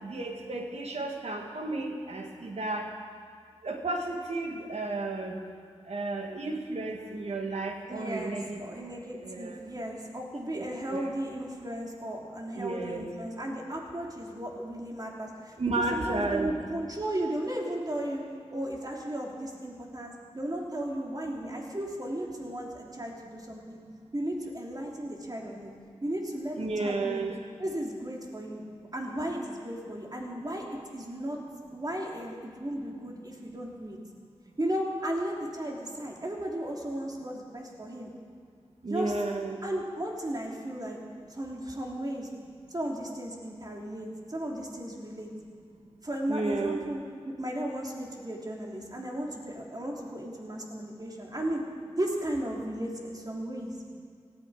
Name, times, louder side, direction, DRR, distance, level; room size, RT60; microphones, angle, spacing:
voice 1, 0.0-2.9 3.6-5.4 5.9-8.6 9.2-9.6 10.5-11.1 12.6-13.1 15.6-16.6 26.6-27.4 38.8-39.6 46.3-46.8, right 2 dB, 75° right, 2 dB, 2.0 m, -32 dB
voice 2, 7.9-18.2 18.5-23.8 24.1-25.7 26.0-27.3 27.6-28.6 28.9-31.4 31.7-34.0 34.6-38.1 38.9-39.1 39.6-41.0 41.3-42.3 42.7-45.3 46.0-47.0 47.2-51.6 52.0-53.7, right 1 dB, 35° right, -1 dB, 3.2 m, -35 dB
18.5 x 14.0 x 5.0 m, 2.3 s
cardioid pair, 50°, 11 cm